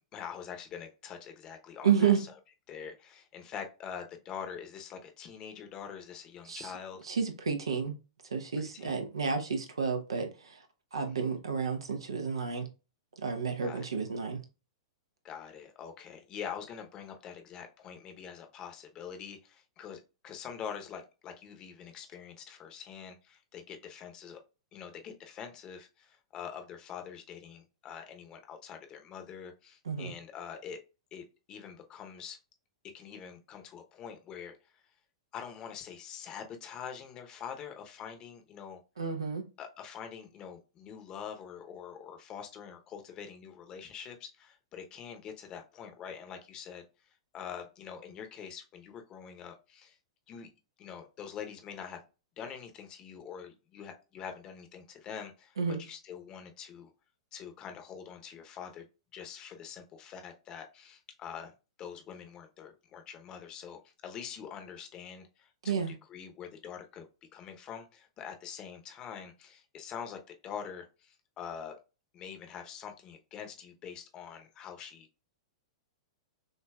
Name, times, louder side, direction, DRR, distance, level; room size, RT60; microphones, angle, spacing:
voice 1, 0.0-2.3 2.7-7.0 8.6-9.0 13.6-13.8 15.2-24.4 24.7-30.8 31.1-32.4 32.9-34.5 35.3-38.8 39.6-46.8 47.3-50.0 50.3-50.5 50.8-52.0 52.4-56.9 57.3-58.8 59.1-61.5 61.8-65.8 66.1-67.1 67.3-71.7 72.1-75.1, left 7 dB, 30° left, 0.9 m, -45 dB
voice 2, 1.8-2.2 6.5-6.7 7.0-7.9 8.3-10.6 10.9-12.7 13.2-14.4 29.8-30.1 39.0-39.4 55.6-55.8 65.6-65.9, right 6 dB, 70° right, 0.9 m, -30 dB
6.4 x 2.7 x 2.4 m
figure-of-eight pair, 100°, 3 cm